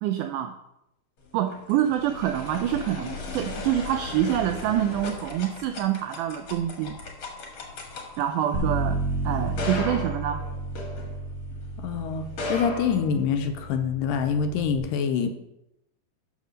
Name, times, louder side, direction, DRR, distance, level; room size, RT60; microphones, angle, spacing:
voice 1, 0.0-0.6 1.3-7.0 8.2-10.4, right 11 dB, 85° right, 8 dB, 1.8 m, -26 dB
sound 1, 1.3-11.6 12.2-13.7, left 2 dB, 50° left, 1.8 m, -37 dB
Bass guitar, 8.5-14.8, right 2 dB, 55° right, 1.8 m, -32 dB
voice 2, 11.8-15.3, left 6 dB, 80° left, 7 dB, 2.2 m, -26 dB
6.7 x 6.4 x 6.4 m, 0.85 s
omnidirectional pair, 4.1 m